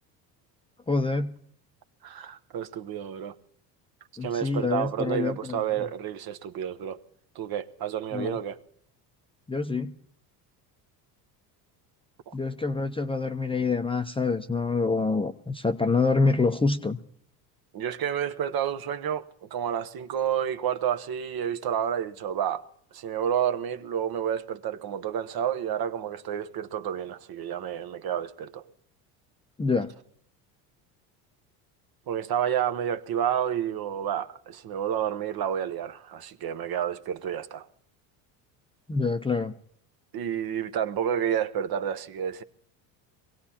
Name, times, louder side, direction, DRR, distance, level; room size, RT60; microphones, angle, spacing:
voice 1, 0.9-1.4 4.2-5.6 8.1-8.4 9.5-9.9 12.3-17.0 29.6-29.9 38.9-39.5, left 4 dB, 10° left, 0.6 m, -26 dB
voice 2, 2.0-3.3 4.2-7.0 7.3-8.6 12.3-12.4 17.7-22.6 22.9-28.6 32.1-37.6 40.1-42.4, right 9 dB, 50° right, 1.0 m, -30 dB
23.5 x 17.0 x 2.9 m
supercardioid pair, 80°, 48 cm